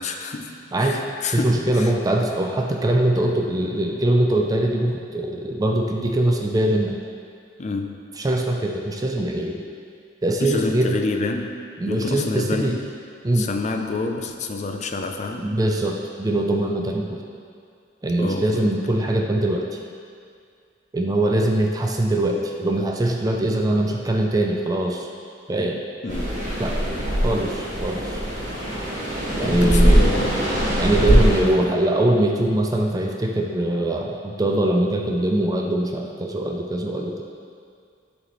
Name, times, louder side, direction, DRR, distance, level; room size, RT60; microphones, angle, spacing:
voice 1, 0.0-0.5 0.8-1.9 7.6-8.0 10.4-12.8 13.3-15.5 18.2-18.7 26.0-26.4 29.4-30.4 31.0-31.8, left 2 dB, 40° left, 4 dB, 0.5 m, -28 dB
voice 2, 0.7-1.0 1.3-7.0 8.2-9.6 10.2-11.0 11.8-12.8 13.2-13.5 15.4-17.2 18.0-19.8 20.9-25.1 25.5-25.8 26.6-26.8 27.2-28.2 29.4-30.0 30.8-37.2, right 1 dB, 20° right, 1 dB, 0.4 m, -22 dB
sound 1, 26.1-31.4, equal, 45° right, 1.5 m, -21 dB
11.0 x 4.2 x 3.1 m, 2.3 s
head